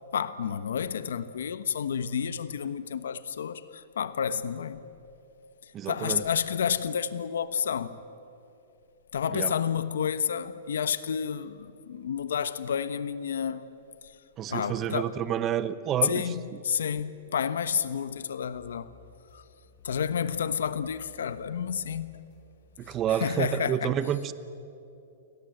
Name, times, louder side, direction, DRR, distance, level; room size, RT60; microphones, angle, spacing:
voice 1, 0.1-4.8 5.9-8.0 9.1-13.7 14.0-14.1 14.5-15.2 16.0-18.9 19.3-19.4 19.8-22.2 23.2-24.0, left 7 dB, 90° left, 1.1 m, -30 dB
voice 2, 5.7-6.2 9.3-9.5 14.4-16.3 22.8-24.3, right 10 dB, 20° right, 0.8 m, -29 dB
sound 1, 18.5-23.6, left 6 dB, 30° left, 2.8 m, -58 dB
29.5 x 23.0 x 7.9 m
hypercardioid pair, 170°, 0 cm